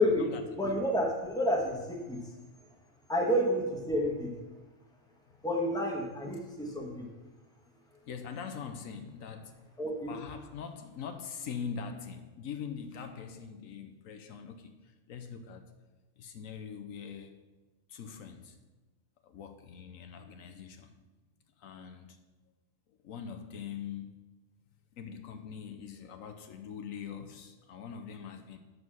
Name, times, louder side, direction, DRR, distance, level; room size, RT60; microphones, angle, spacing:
voice 1, 0.0-0.7 6.2-6.3 8.1-9.5 10.1-14.6 15.1-15.6 16.2-17.3 17.9-18.4 19.3-20.8 21.6-22.1 23.1-24.1 25.0-28.6, left 7 dB, 75° left, 7 dB, 1.1 m, -42 dB
voice 2, 0.6-2.2 3.1-4.3 5.4-7.1 9.8-10.1, left 1 dB, 5° left, -1 dB, 1.4 m, -29 dB
7.4 x 6.3 x 6.2 m, 1.2 s
omnidirectional pair, 1.4 m